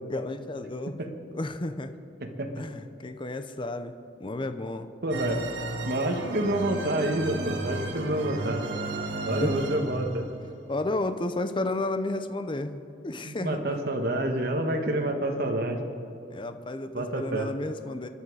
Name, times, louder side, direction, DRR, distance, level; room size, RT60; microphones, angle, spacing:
voice 1, 0.1-1.0 1.3-1.9 2.6-3.9 4.2-4.9 9.3-9.5 10.7-13.6 16.3-18.1, left 2 dB, 30° left, 10 dB, 0.6 m, -32 dB
voice 2, 5.0-5.4 5.8-8.6 9.2-10.2 13.2-15.8 16.9-17.5, right 1 dB, 60° right, 4 dB, 1.6 m, -28 dB
sound 1, 5.1-10.3, right 2 dB, 75° right, 1.3 m, -34 dB
25.5 x 11.0 x 4.9 m, 2.7 s
head